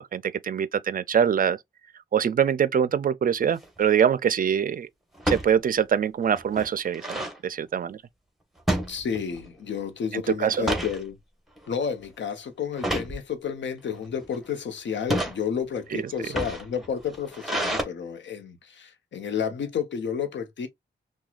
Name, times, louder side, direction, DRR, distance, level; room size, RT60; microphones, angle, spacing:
voice 1, 0.0-1.6 2.1-4.9 5.3-8.0 10.1-10.7 15.9-16.3, right 8 dB, 50° right, 0.4 m, -24 dB
sound 1, 3.4-3.8 5.2-5.5 6.0-6.1 6.3-7.4 8.7-9.5 9.8-10.1 10.5-11.0 11.6-11.8 12.8-13.2 13.9-14.4 14.9-15.4 16.1-17.8, right 1 dB, ahead, 1.2 m, -29 dB
voice 2, 8.9-11.2 11.7-20.7, left 7 dB, 75° left, 0.9 m, -31 dB
5.9 x 2.3 x 2.4 m
cardioid pair, 80°, 19 cm